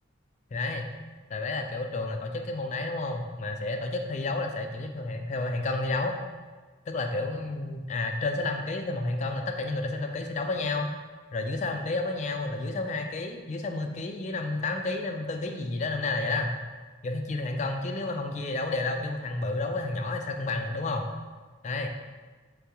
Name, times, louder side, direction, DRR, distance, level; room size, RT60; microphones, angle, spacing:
voice 1, 0.5-0.9 1.3-6.1 6.9-10.9 11.3-16.5 17.0-21.0 21.6-21.9, left 2 dB, 35° left, 4 dB, 0.3 m, -31 dB
3.8 x 3.5 x 2.9 m, 1.4 s
head